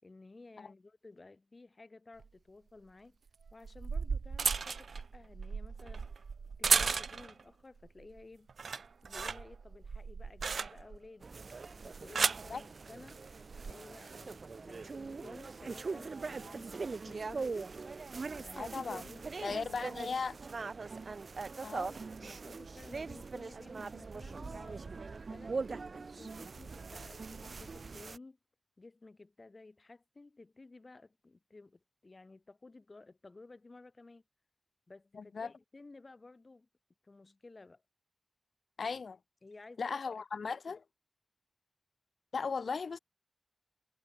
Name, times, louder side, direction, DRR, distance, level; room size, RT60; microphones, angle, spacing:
voice 1, 0.0-3.2 3.5-6.1 6.6-8.5 9.0-11.3 11.8-13.2 13.7-17.7 18.4-20.2 21.7-24.9 25.3-28.4 28.8-34.2 34.9-36.7 37.0-37.8 39.4-40.6, left 3 dB, 40° left, 3.1 m, -55 dB
sound 1, 2.2-2.3 3.5-7.4 7.8-8.2 8.5-11.1 11.8-12.5 13.4-13.7, right 5 dB, 85° right, 0.3 m, -34 dB
sound 2, 11.2-28.2, right 4 dB, 60° right, 0.9 m, -42 dB
voice 2, 18.6-19.0 19.4-20.3 21.6-21.9 35.1-35.5 38.8-39.2 39.8-40.8 42.3-43.0, left 5 dB, 80° left, 1.1 m, -37 dB
wide cardioid pair, 105°, 0 cm